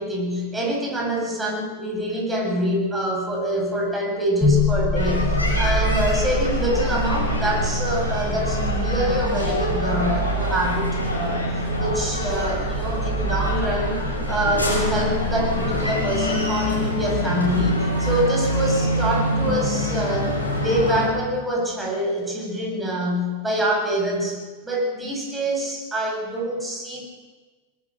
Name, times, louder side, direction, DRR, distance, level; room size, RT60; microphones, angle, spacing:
voice 1, 0.0-5.3 5.6-11.5 11.8-27.0, equal, 10° right, 0 dB, 7.8 m, -25 dB
sound 1, 4.4-16.5, equal, 15° left, 5.8 m, -27 dB
sound 2, 4.9-21.1, left 1 dB, 80° left, 6.3 m, -25 dB
22.0 x 21.0 x 6.6 m, 1.3 s
figure-of-eight pair, 90°, 0 cm